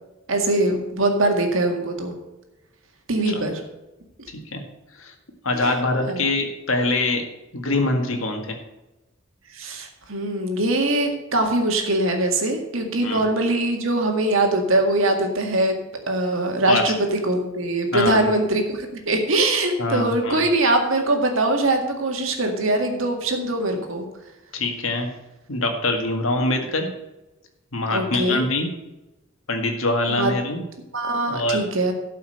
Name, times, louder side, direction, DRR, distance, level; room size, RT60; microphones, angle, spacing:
voice 1, 0.3-2.1 3.1-3.6 5.5-5.7 6.1-6.3 9.5-15.8 16.1-24.1 27.9-28.4 30.1-30.3 30.9-31.9, right 2 dB, 65° right, 3 dB, 2.0 m, -22 dB
voice 2, 5.4-7.2 7.5-8.6 13.0-13.2 16.7-16.8 17.9-18.2 19.8-20.4 24.5-25.1 25.5-26.9 27.7-28.7 29.5-30.6 31.3-31.6, left 2 dB, 70° left, 4 dB, 1.9 m, -24 dB
12.5 x 5.7 x 6.5 m, 1.0 s
head